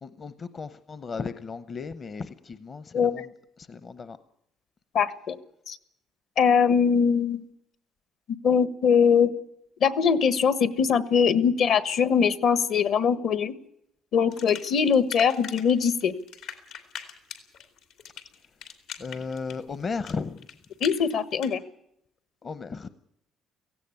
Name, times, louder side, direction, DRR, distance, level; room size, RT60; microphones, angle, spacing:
voice 1, 0.0-3.3 3.6-4.2 19.0-20.5 22.4-22.9, left 4 dB, 35° left, 13 dB, 0.8 m, -35 dB
voice 2, 2.9-3.2 4.9-5.4 5.7-5.8 6.4-7.5 8.4-9.3 9.8-13.5 14.1-16.1 20.8-21.6, left 6 dB, 60° left, 14 dB, 1.3 m, -22 dB
sound 1, 14.3-15.7 16.0-21.5, left 8 dB, 80° left, 2.9 m, -41 dB
17.0 x 16.0 x 9.8 m, 0.77 s
cardioid pair, 115°, 0 cm